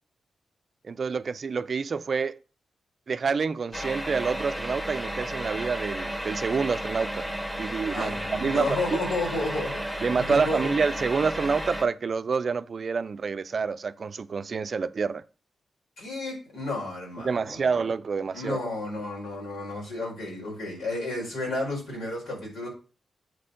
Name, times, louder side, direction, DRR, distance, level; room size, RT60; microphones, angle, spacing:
voice 1, 0.9-2.4 3.1-7.3 7.6-8.1 8.4-8.8 9.0-9.1 10.0-15.2 17.2-18.6, right 5 dB, 50° right, 0.4 m, -27 dB
sound 1, 3.7-11.8, equal, 15° left, 1.6 m, -33 dB
voice 2, 7.9-10.8 16.0-17.7 18.3-22.7, left 2 dB, 90° left, 4.5 m, -32 dB
8.0 x 4.3 x 5.1 m
wide cardioid pair, 110°, 0 cm